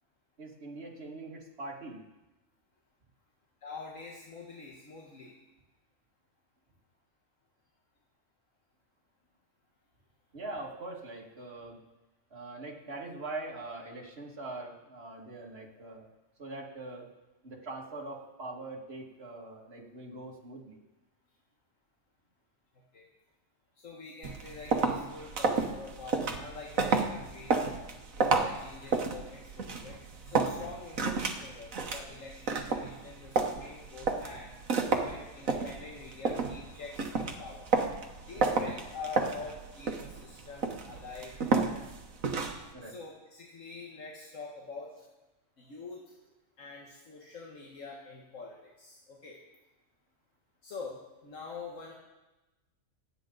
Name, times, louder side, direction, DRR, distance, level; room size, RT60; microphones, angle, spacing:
voice 1, 0.4-2.0 10.3-11.8 12.3-16.1 16.4-17.1 17.4-20.8 30.5-30.7 38.3-38.6 42.7-43.0 45.6-45.8, right 2 dB, 50° right, -2 dB, 2.5 m, -43 dB
voice 2, 3.6-5.3 22.9-23.1 23.8-27.7 28.2-30.0 30.2-34.6 34.9-37.7 38.2-41.9 42.8-45.1 45.6-46.2 46.6-49.4 50.6-51.9, left 4 dB, 75° left, -2 dB, 1.8 m, -45 dB
sound 1, 24.2-42.7, right 4 dB, 85° right, 1.6 m, -31 dB
26.5 x 9.0 x 4.0 m, 1.1 s
omnidirectional pair, 1.4 m